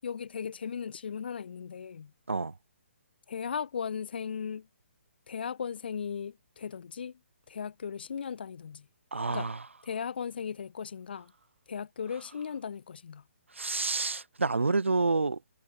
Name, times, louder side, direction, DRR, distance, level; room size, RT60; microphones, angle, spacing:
voice 1, 0.0-2.1 3.3-4.7 5.3-7.2 7.5-8.9 9.3-9.5 9.8-11.3 11.7-13.2, left 7 dB, 50° left, 7.6 m, -37 dB
voice 2, 9.1-9.5 13.6-15.4, right 3 dB, 70° right, 4.0 m, -28 dB
figure-of-eight pair, 135°, 7 cm